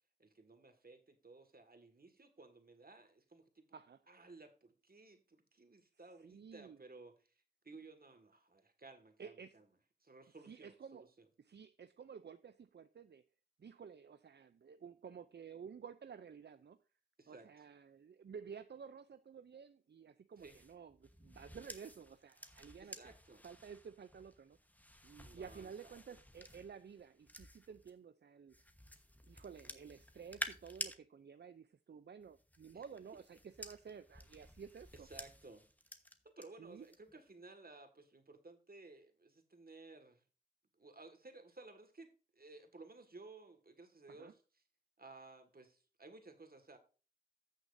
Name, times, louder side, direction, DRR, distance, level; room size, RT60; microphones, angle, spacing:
voice 1, 0.2-3.7 4.1-9.7 10.0-11.2 17.2-17.5 20.4-20.6 22.8-23.5 25.2-26.0 32.7-32.8 34.9-35.6 36.2-40.2 40.8-44.4 45.0-46.8, right 3 dB, 60° right, 1.8 m, -57 dB
voice 2, 6.2-6.8 9.2-9.6 10.4-11.1 11.4-13.2 13.6-16.8 17.3-23.1 23.4-24.6 25.0-28.5 29.3-35.1 36.6-36.9 44.1-44.3, right 6 dB, 75° right, 0.5 m, -53 dB
sound 1, 20.4-27.9 28.5-31.0 32.2-36.5 36.8-37.2, left 1 dB, 10° left, 1.1 m, -51 dB
15.0 x 6.4 x 2.6 m
wide cardioid pair, 45°, 18 cm